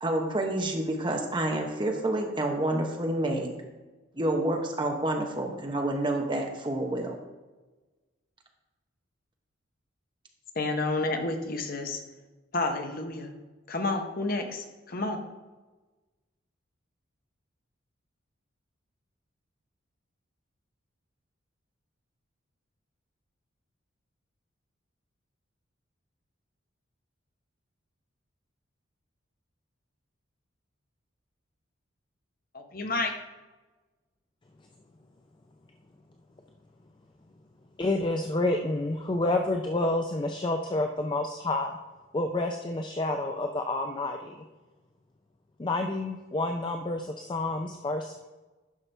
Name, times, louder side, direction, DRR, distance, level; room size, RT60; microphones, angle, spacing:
voice 1, 0.0-3.5 4.2-7.2, right 1 dB, 25° right, 2 dB, 0.9 m, -28 dB
voice 2, 10.6-12.0 12.5-13.3 13.7-15.2 32.5-33.1, left 2 dB, 45° left, 5 dB, 0.9 m, -30 dB
voice 3, 37.8-41.8 42.1-44.4 45.6-48.2, left 2 dB, 25° left, 4 dB, 0.4 m, -29 dB
11.0 x 5.8 x 3.3 m, 1.2 s
head